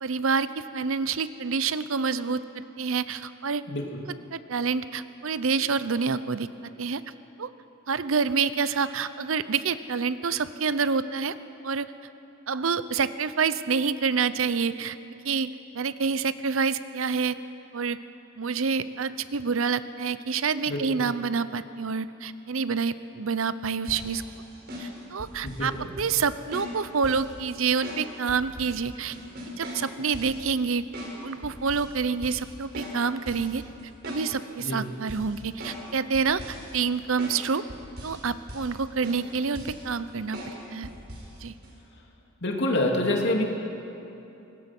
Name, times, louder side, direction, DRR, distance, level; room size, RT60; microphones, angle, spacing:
voice 1, 0.0-3.6 4.3-7.0 7.4-7.5 7.9-11.3 11.6-11.9 12.5-15.0 15.2-17.4 17.7-18.0 18.4-24.2 24.8-29.2 29.6-30.8 31.2-33.6 34.1-37.6 38.0-40.9 41.4-41.5, right 5 dB, 75° right, 14 dB, 0.7 m, -27 dB
voice 2, 3.7-4.0 20.7-21.0 25.4-25.9 34.6-34.8 42.4-43.4, left 1 dB, 55° left, 1 dB, 2.7 m, -27 dB
sound 1, 23.9-25.7 26.0-26.2 26.5-27.3 27.8-28.8 29.1-30.4 30.9-31.1 31.4-31.9 32.2-32.5 32.7-33.5 33.8-34.6 35.1-35.9 36.1-36.7 37.2-37.4 37.7-38.2 38.5-38.8 39.0-39.8 40.3-40.6 40.8-41.3 41.6-41.7, equal, 50° right, 5.8 m, -39 dB
24.5 x 20.0 x 6.1 m, 2.9 s
head